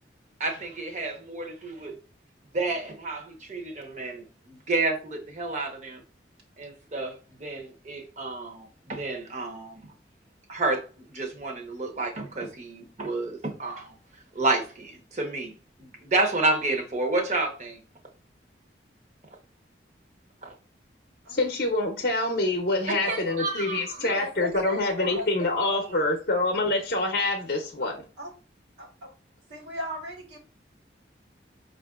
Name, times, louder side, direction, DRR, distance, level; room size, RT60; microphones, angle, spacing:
voice 1, 0.4-2.0 2.5-6.0 6.6-9.8 10.5-13.9 14.3-15.5 15.8-17.8 20.4-20.5 23.1-24.1, right 2 dB, 40° right, 0.8 m, -30 dB
voice 2, 21.3-28.0, left 2 dB, 55° left, 0.6 m, -26 dB
voice 3, 23.0-23.5 24.0-25.3 25.6-26.0 27.8-27.9 28.2-28.3 28.8-28.9 29.5-30.4, equal, 75° right, 1.3 m, -37 dB
5.2 x 2.5 x 2.3 m
head